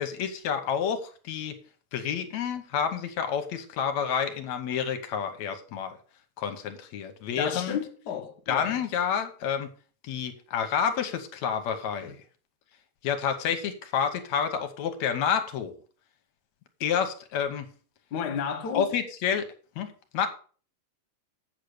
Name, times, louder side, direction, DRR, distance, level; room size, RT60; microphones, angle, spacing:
voice 1, 0.0-1.6 1.9-5.9 6.4-7.8 8.5-9.7 10.0-12.1 13.0-15.7 16.8-17.7 18.7-19.5 19.8-19.9 20.1-20.3, left 7 dB, 75° left, 2.3 m, -29 dB
voice 2, 7.4-8.8 12.0-12.1 18.1-18.9, left 7 dB, 50° left, 1.3 m, -32 dB
8.7 x 6.7 x 6.6 m
omnidirectional pair, 3.3 m